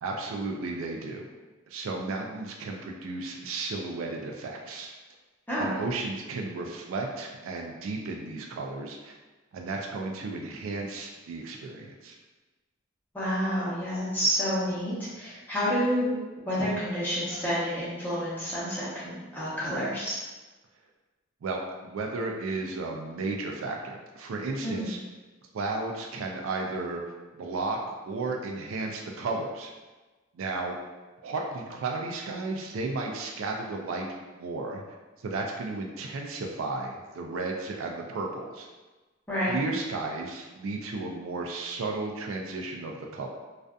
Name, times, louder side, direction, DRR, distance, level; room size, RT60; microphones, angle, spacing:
voice 1, 0.0-1.3 1.7-4.9 5.6-9.2 9.5-12.2 21.4-25.0 25.5-27.0 27.3-27.8 28.1-29.7 30.3-30.8 31.2-34.1 34.4-34.8 35.2-38.7 39.5-43.3, right 3 dB, 80° right, 1 dB, 0.4 m, -33 dB
voice 2, 13.1-16.1 16.5-20.2 24.6-24.9 39.3-39.6, equal, 10° left, -10 dB, 0.8 m, -29 dB
2.5 x 2.4 x 2.2 m, 1.2 s
head